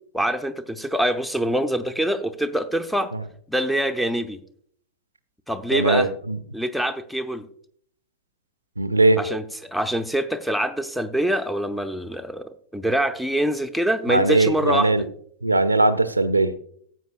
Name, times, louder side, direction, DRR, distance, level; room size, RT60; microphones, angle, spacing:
voice 1, 0.1-3.1 3.5-4.4 5.5-6.1 6.5-7.5 9.2-15.0, right 1 dB, ahead, 11 dB, 0.5 m, -25 dB
voice 2, 5.7-6.4 8.8-9.2 14.1-15.1 15.4-16.6, right 2 dB, 85° right, 13 dB, 0.5 m, -20 dB
14.5 x 7.9 x 2.4 m, 0.63 s
figure-of-eight pair, 90°, 0 cm